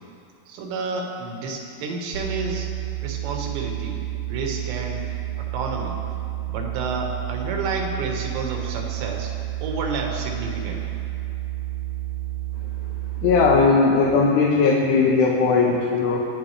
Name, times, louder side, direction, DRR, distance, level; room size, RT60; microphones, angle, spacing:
voice 1, 0.5-2.7 3.0-4.0 4.3-5.1 5.4-6.0 6.5-9.3 9.6-11.0, right 3 dB, 80° right, 1 dB, 3.6 m, -30 dB
sound 1, 2.1-13.6, right 15 dB, 50° right, 1.9 m, -30 dB
voice 2, 13.2-16.2, left 4 dB, 75° left, -3 dB, 3.2 m, -18 dB
26.5 x 10.0 x 3.3 m, 2.5 s
omnidirectional pair, 4.9 m